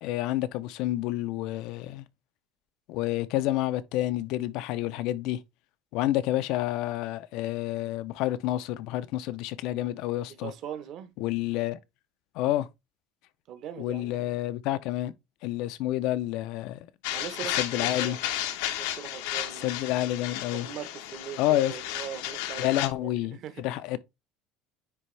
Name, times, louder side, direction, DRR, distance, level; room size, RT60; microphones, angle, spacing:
voice 1, 0.0-2.0 2.9-5.4 5.9-10.5 11.2-11.8 12.3-12.7 13.8-15.1 15.4-16.9 17.6-18.2 19.6-20.7 21.4-21.7 22.6-24.0, left 15 dB, 55° left, 0.5 m, -29 dB
voice 2, 10.4-11.1 13.5-14.3 17.1-18.2 18.8-19.8 20.5-23.6, right 9 dB, 40° right, 1.0 m, -40 dB
sound 1, 17.0-22.9, left 12 dB, 90° left, 1.0 m, -33 dB
9.8 x 3.5 x 3.2 m
cardioid pair, 170°, 0 cm